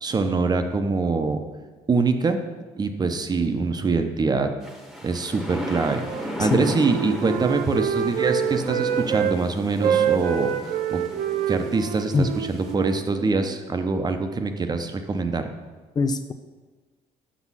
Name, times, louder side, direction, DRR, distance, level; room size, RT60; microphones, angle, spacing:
voice 1, 0.0-1.4 1.9-2.4 2.8-4.5 5.0-11.0 11.5-15.5, right 4 dB, 30° right, 7 dB, 0.8 m, -24 dB
sound 1, 4.6-12.7, equal, ahead, 1.2 m, -35 dB
Wind instrument woodwind instrument, 6.0-9.3 9.7-13.6, right 9 dB, 80° right, 0.6 m, -27 dB
voice 2, 16.0-16.3, left 4 dB, 30° left, 9 dB, 0.4 m, -23 dB
6.2 x 6.0 x 5.6 m, 1.3 s
supercardioid pair, 85°, 14 cm